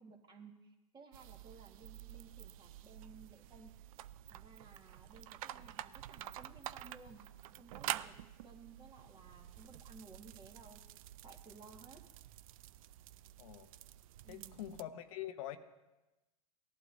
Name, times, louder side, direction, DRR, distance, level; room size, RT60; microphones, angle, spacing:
voice 1, 0.0-3.7 4.3-7.2 7.6-8.2 8.4-10.8 11.2-12.0 14.2-14.7, right 4 dB, 25° right, 3 dB, 1.7 m, -57 dB
sound 1, 1.1-14.8, right 13 dB, 70° right, 0.4 m, -48 dB
voice 2, 13.4-13.7 14.3-15.6, left 12 dB, 65° left, 9 dB, 0.8 m, -44 dB
18.0 x 11.5 x 2.6 m, 1.0 s
hypercardioid pair, 110°, 19 cm